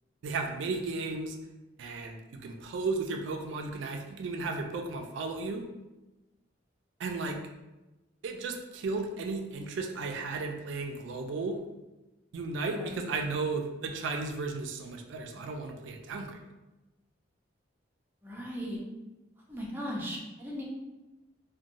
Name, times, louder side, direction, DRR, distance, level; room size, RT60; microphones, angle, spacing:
voice 1, 0.2-1.4 1.8-5.6 7.0-7.4 8.2-11.6 12.3-16.4, right 3 dB, 70° right, 3 dB, 0.3 m, -34 dB
voice 2, 18.2-18.8 19.5-20.6, equal, 10° right, -3 dB, 0.5 m, -37 dB
2.9 x 2.1 x 2.5 m, 1.0 s
head